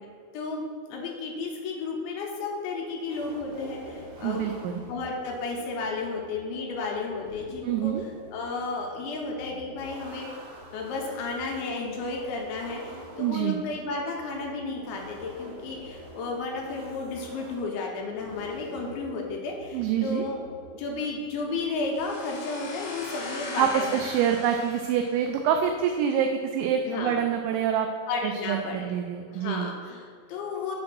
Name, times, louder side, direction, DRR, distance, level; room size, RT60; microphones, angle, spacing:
voice 1, 0.9-4.5 4.9-7.9 8.3-10.3 10.7-20.4 20.7-24.0 26.9-27.2 28.1-28.9 29.3-30.8, left 3 dB, 75° left, -1 dB, 3.0 m, -33 dB
sound 1, 3.1-22.0, right 1 dB, 60° right, 3.7 m, -46 dB
voice 2, 4.2-4.8 7.6-8.0 13.2-13.6 19.7-20.3 23.6-27.9 28.2-29.7, right 9 dB, 85° right, 5 dB, 2.7 m, -26 dB
sound 2, 22.0-25.7, left 3 dB, 55° left, 3.5 m, -39 dB
7.3 x 4.4 x 6.0 m, 2.2 s
omnidirectional pair, 5.6 m